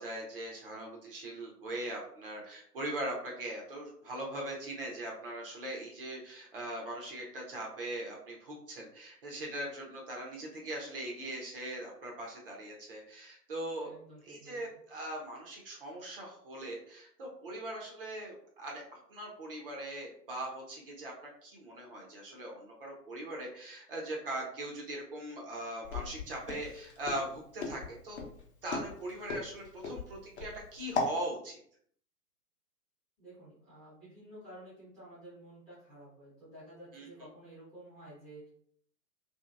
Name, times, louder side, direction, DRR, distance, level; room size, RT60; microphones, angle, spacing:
voice 1, 0.0-13.9 14.3-28.2 28.6-31.6 36.9-37.1, right 1 dB, 35° right, -1 dB, 0.7 m, -40 dB
voice 2, 13.8-14.8 33.2-38.5, right 1 dB, ahead, -12 dB, 0.6 m, -52 dB
Walk footsteps, 25.8-31.2, left 3 dB, 45° left, 0.8 m, -37 dB
2.7 x 2.6 x 2.4 m, 0.63 s
figure-of-eight pair, 120°, 47 cm